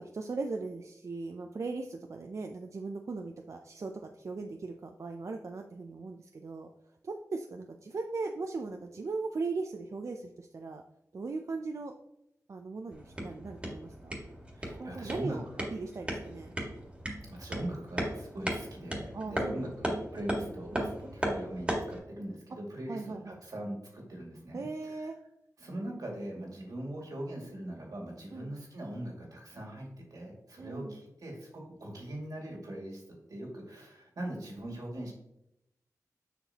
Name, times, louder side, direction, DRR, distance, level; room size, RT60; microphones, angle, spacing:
voice 1, 0.0-6.7 7.0-10.8 11.1-11.9 12.5-14.1 14.8-15.4 15.7-16.5 19.1-20.1 20.3-20.5 22.9-23.4 24.5-25.2 28.3-28.5 30.6-31.0, right 3 dB, 55° right, 4 dB, 0.5 m, -38 dB
sound 1, 12.9-22.0, equal, 20° right, 1.8 m, -37 dB
voice 2, 14.5-15.4 17.3-25.1 25.6-33.0 33.3-35.1, right 1 dB, 80° right, -1 dB, 2.1 m, -41 dB
7.0 x 5.8 x 2.8 m, 0.84 s
wide cardioid pair, 80°, 6 cm